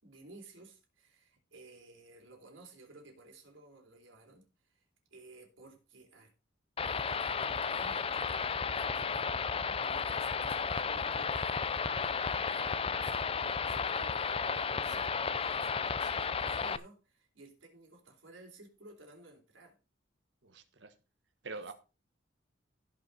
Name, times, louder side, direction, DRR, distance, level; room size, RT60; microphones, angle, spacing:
voice 1, 0.0-4.8 5.1-6.3 6.8-9.3 9.7-19.8 21.5-21.7, right 2 dB, 80° right, 3.8 m, -55 dB
sound 1, 6.8-16.8, left 5 dB, 30° left, 0.5 m, -33 dB
voice 2, 20.4-20.9 21.4-21.7, right 3 dB, 65° right, 1.4 m, -44 dB
16.0 x 5.5 x 4.2 m
head